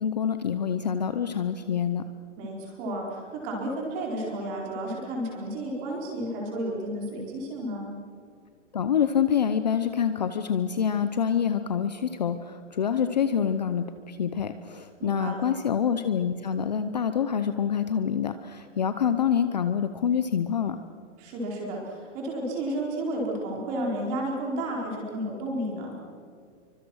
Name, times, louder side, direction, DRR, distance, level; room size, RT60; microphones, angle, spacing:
voice 1, 0.0-2.0 8.7-20.8, left 8 dB, 35° left, 10 dB, 0.7 m, -26 dB
voice 2, 2.4-7.9 15.0-15.5 21.2-25.9, right 1 dB, 20° right, -1 dB, 4.5 m, -32 dB
26.5 x 24.5 x 6.3 m, 2.2 s
hypercardioid pair, 180°, 37 cm